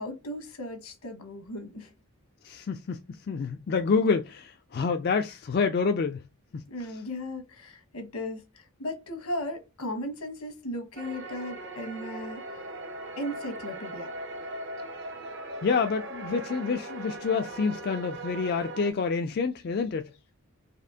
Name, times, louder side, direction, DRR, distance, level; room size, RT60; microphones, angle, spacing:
voice 1, 0.0-1.9 6.7-12.6 13.2-14.1, left 1 dB, 85° left, 1.2 m, -36 dB
voice 2, 2.4-6.2 6.5-6.7 15.6-20.1, left 5 dB, 45° left, 0.3 m, -28 dB
sound 1, 11.0-18.9, right 2 dB, 50° right, 0.7 m, -39 dB
4.2 x 2.8 x 2.7 m
head